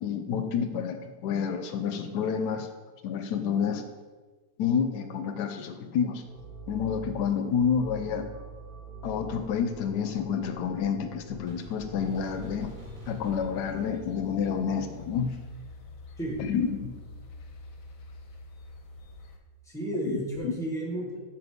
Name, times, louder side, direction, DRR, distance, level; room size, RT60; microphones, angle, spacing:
voice 1, 0.0-2.7 3.0-3.8 4.6-6.2 6.7-8.3 9.0-12.7 13.1-15.3 16.4-17.0 20.0-20.5, left 7 dB, 80° left, 7 dB, 1.1 m, -29 dB
sound 1, 6.2-13.4, equal, 60° right, 1.9 m, -44 dB
sound 2, 12.1-19.4, left 3 dB, 65° left, 1.1 m, -47 dB
voice 2, 16.2-16.5 19.6-21.2, right 1 dB, ahead, -2 dB, 1.1 m, -32 dB
6.3 x 5.9 x 3.5 m, 1.4 s
omnidirectional pair, 1.8 m